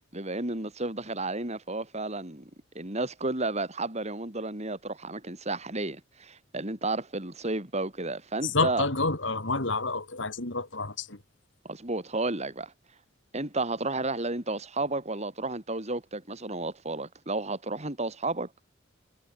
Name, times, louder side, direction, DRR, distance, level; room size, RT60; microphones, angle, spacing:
voice 1, 0.1-2.5 2.8-8.9 11.7-12.7 13.3-18.5, right 2 dB, 35° right, 3.6 m, -32 dB
voice 2, 8.4-11.2, left 3 dB, 65° left, 3.4 m, -29 dB
head